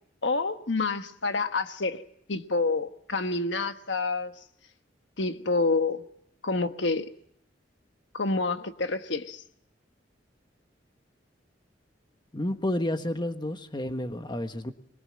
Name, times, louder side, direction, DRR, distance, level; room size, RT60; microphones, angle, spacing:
voice 1, 0.2-2.0 2.3-4.3 5.2-6.0 6.4-7.1 8.1-9.4, left 3 dB, 75° left, 8 dB, 1.3 m, -28 dB
voice 2, 12.3-14.7, left 1 dB, 25° left, 8 dB, 1.3 m, -30 dB
23.0 x 21.0 x 7.6 m, 0.69 s
head